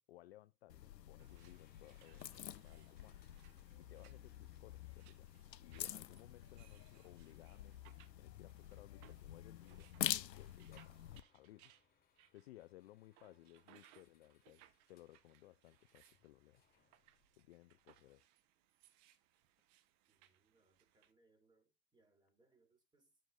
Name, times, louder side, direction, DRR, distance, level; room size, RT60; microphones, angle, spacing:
voice 1, 0.0-3.2 3.8-5.3 5.6-11.7 12.3-16.7 17.4-18.3, left 16 dB, 40° left, 0.5 m, -61 dB
sound 1, 0.7-11.2, left 11 dB, 85° left, 0.6 m, -47 dB
sound 2, 1.2-21.1, right 12 dB, 35° right, 1.1 m, -70 dB
sound 3, 1.3-18.2, left 7 dB, 20° left, 3.1 m, -78 dB
voice 2, 20.1-23.2, right 2 dB, 10° right, 3.2 m, -75 dB
13.0 x 6.5 x 2.6 m
figure-of-eight pair, 100°, 49 cm